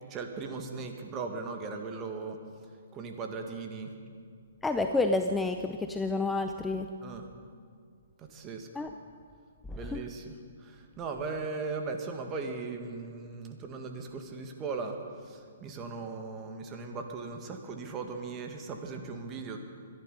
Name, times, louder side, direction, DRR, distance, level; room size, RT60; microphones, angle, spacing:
voice 1, 0.1-2.4 2.9-3.9 7.0-7.3 8.2-8.9 9.7-19.6, right 4 dB, 25° right, 4 dB, 1.9 m, -38 dB
voice 2, 4.6-6.9 8.8-8.9 9.7-10.0, left 3 dB, 5° left, 5 dB, 0.6 m, -29 dB
24.0 x 11.0 x 5.5 m, 2.2 s
hypercardioid pair, 130°, 0 cm